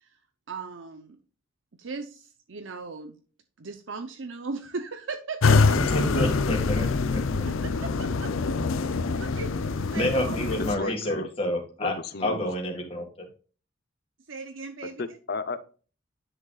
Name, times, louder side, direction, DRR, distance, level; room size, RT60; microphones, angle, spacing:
voice 1, 0.5-1.2 1.8-3.1 3.6-6.0 7.4-7.6 7.8-8.3 8.8-10.4 10.8-11.0 14.3-15.2, right 4 dB, 75° right, 7 dB, 0.7 m, -38 dB
sound 1, 5.4-10.8, left 4 dB, 90° left, 0.6 m, -25 dB
voice 2, 5.9-7.5 9.9-11.9 12.2-13.3, left 1 dB, 30° left, 0 dB, 1.9 m, -29 dB
voice 3, 10.7-11.3 11.8-12.5 15.0-15.6, left 3 dB, 50° left, 12 dB, 0.7 m, -33 dB
10.0 x 6.5 x 2.4 m, 0.37 s
head